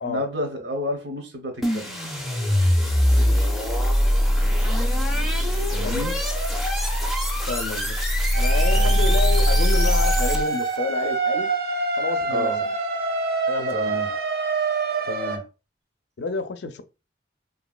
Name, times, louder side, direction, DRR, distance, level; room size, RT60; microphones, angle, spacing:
voice 1, 0.0-1.8 5.7-6.1 8.7-9.0 12.3-12.6 13.7-14.1 15.0-15.4, left 1 dB, 80° right, 0.8 m, -30 dB
sound 1, 1.6-10.7, equal, ahead, 0.4 m, -21 dB
voice 2, 7.5-8.0 8.3-11.5 12.0-12.7 13.5-13.9 16.2-16.8, left 3 dB, 75° left, 0.4 m, -29 dB
sound 2, 8.3-15.4, right 4 dB, 55° right, 0.5 m, -26 dB
2.9 x 2.7 x 2.3 m
head